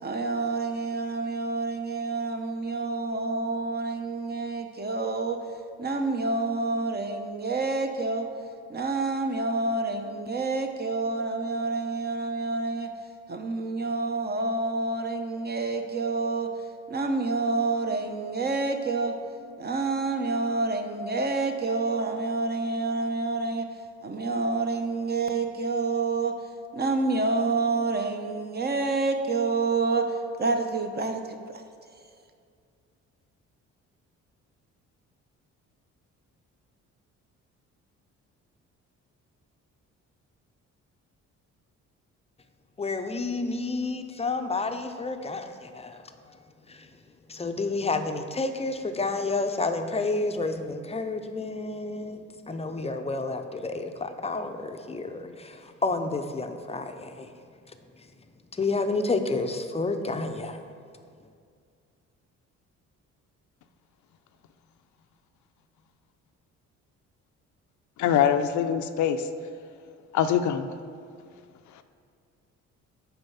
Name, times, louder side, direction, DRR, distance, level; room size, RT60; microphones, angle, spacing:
voice 1, 0.0-5.4 5.8-8.3 8.7-12.9 13.3-16.5 16.9-19.1 19.6-23.7 24.0-26.3 26.7-31.6, right 3 dB, 35° right, 5 dB, 0.7 m, -28 dB
voice 2, 42.8-46.0 46.7-46.9 47.3-57.3 58.5-60.6, left 3 dB, 20° left, 7 dB, 0.5 m, -30 dB
voice 3, 68.0-69.3 70.1-70.7, left 9 dB, 70° left, 9 dB, 0.5 m, -23 dB
6.9 x 4.6 x 5.6 m, 2.2 s
cardioid pair, 90°, 30 cm